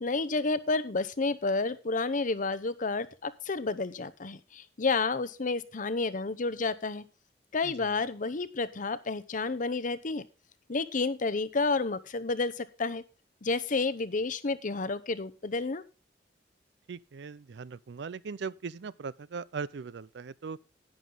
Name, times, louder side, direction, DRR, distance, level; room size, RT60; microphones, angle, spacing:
voice 1, 0.0-7.0 7.5-10.2 10.7-13.0 13.4-15.8, left 3 dB, 45° left, 0.8 m, -30 dB
voice 2, 16.9-20.6, right 5 dB, 70° right, 0.5 m, -39 dB
11.0 x 9.3 x 3.8 m
head